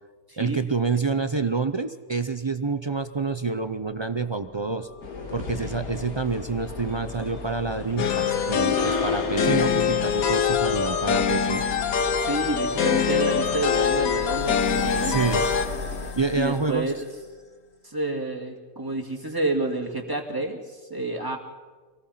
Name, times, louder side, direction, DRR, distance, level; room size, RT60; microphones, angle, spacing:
voice 1, 0.4-4.9 5.3-11.6 15.1-15.4 16.2-16.9, right 4 dB, 45° right, 10 dB, 0.3 m, -27 dB
sound 1, 3.2-17.4, left 5 dB, 50° left, 1.1 m, -40 dB
sound 2, 5.0-16.1, left 3 dB, 90° left, 2.7 m, -35 dB
sound 3, 8.0-15.7, left 7 dB, 75° left, 1.5 m, -24 dB
voice 2, 12.2-15.2 16.3-17.1 17.8-21.4, right 2 dB, 15° right, 2 dB, 2.2 m, -29 dB
25.0 x 18.0 x 5.8 m, 1.3 s
omnidirectional pair, 1.5 m